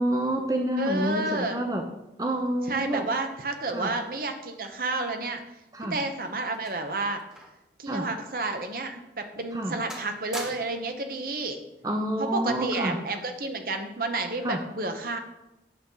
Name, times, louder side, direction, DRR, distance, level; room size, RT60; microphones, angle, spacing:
voice 1, 0.0-1.8 2.2-3.1 3.7-3.9 5.7-6.0 7.9-8.1 9.5-9.7 11.8-13.0 14.4-14.6, right 1 dB, 20° right, 3 dB, 0.6 m, -28 dB
voice 2, 0.8-1.6 2.7-5.4 5.8-7.2 7.8-11.6 12.2-15.2, right 2 dB, 55° right, 6 dB, 0.9 m, -30 dB
sound 1, 5.7-7.7 8.0-8.2 8.8-8.9 9.4-9.6 9.9-10.9 11.9-12.2, equal, 5° right, 1.2 m, -43 dB
8.6 x 7.1 x 3.9 m, 0.93 s
head